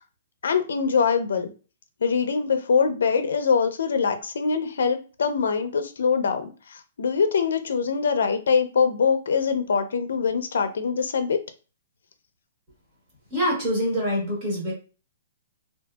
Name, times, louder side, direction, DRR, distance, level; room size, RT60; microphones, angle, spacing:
voice 1, 0.4-1.5 2.0-11.4, left 5 dB, 70° left, 8 dB, 0.5 m, -23 dB
voice 2, 13.3-14.7, equal, 20° right, -4 dB, 1.0 m, -25 dB
2.7 x 2.6 x 2.2 m, 0.35 s
hypercardioid pair, 180°, 0 cm